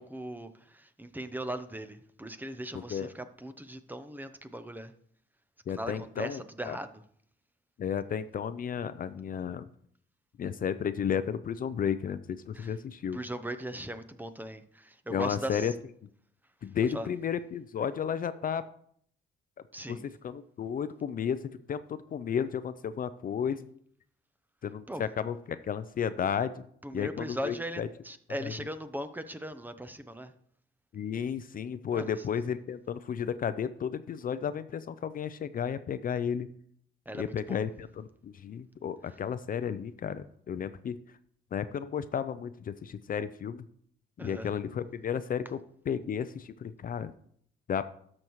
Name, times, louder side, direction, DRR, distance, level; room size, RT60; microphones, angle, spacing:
voice 1, 0.0-4.9 5.7-7.0 12.5-12.7 13.1-15.7 16.9-17.1 19.7-20.0 24.9-25.0 26.8-30.3 31.9-32.1 37.1-37.6 44.2-44.5, right 1 dB, 10° right, 0.6 m, -39 dB
voice 2, 2.7-3.1 5.7-6.8 7.8-9.7 10.4-13.2 15.1-15.7 16.6-18.6 19.9-20.0 20.2-23.7 24.6-26.5 26.9-27.9 28.4-28.5 30.9-36.5 37.1-41.0 41.5-43.6 44.2-47.1 47.7-47.9, left 8 dB, 45° left, 0.5 m, -33 dB
12.0 x 6.5 x 3.1 m
cardioid pair, 90°, 20 cm